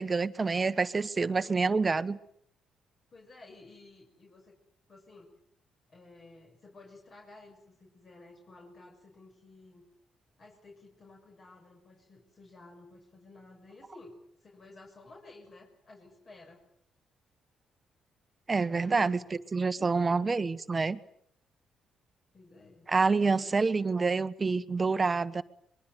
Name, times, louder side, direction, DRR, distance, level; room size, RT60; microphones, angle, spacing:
voice 1, 0.0-2.2 18.5-21.0 22.9-25.4, right 4 dB, 30° right, 13 dB, 1.4 m, -27 dB
voice 2, 3.1-4.6 4.9-5.3 5.9-9.9 10.4-16.6 18.7-20.3 22.3-22.9 23.4-23.6, left 2 dB, 45° left, 1 dB, 6.6 m, -53 dB
24.0 x 22.5 x 9.5 m, 0.69 s
cardioid pair, 90°, 0 cm